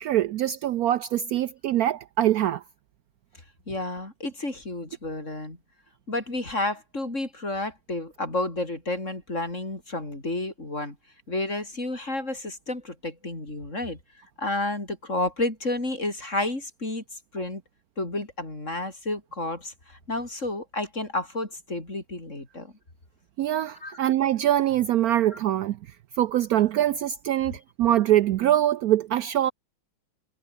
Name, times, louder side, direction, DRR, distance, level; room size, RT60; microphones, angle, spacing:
voice 1, 0.0-2.6 23.4-25.8 26.2-29.5, right 12 dB, 90° right, 0.8 m, -23 dB
voice 2, 3.7-5.6 6.1-11.0 11.3-14.0 14.4-17.0 17.3-17.6 18.0-22.7 23.8-24.0, left 2 dB, 35° left, 5.9 m, -31 dB
omnidirectional pair, 2.2 m